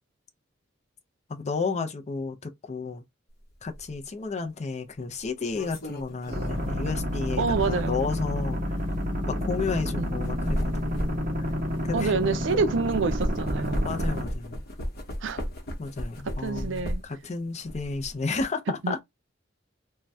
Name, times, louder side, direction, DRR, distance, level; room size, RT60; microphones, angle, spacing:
voice 1, 1.3-3.0 3.6-8.6 9.2-11.5 11.8-12.1 13.8-14.6 15.8-19.0, left 4 dB, 35° left, 0.5 m, -32 dB
sound 1, 3.7-3.9 5.2-8.1 8.7-8.9 10.0-12.6 12.9-17.2 17.6-18.4, equal, 55° left, 0.9 m, -34 dB
sound 2, 6.3-14.2, equal, 45° right, 1.0 m, -30 dB
voice 2, 7.4-8.0 10.0-10.1 11.9-13.9 15.2-15.4 16.2-17.0 18.8-18.9, right 4 dB, 70° right, 0.4 m, -27 dB
2.6 x 2.2 x 3.2 m
head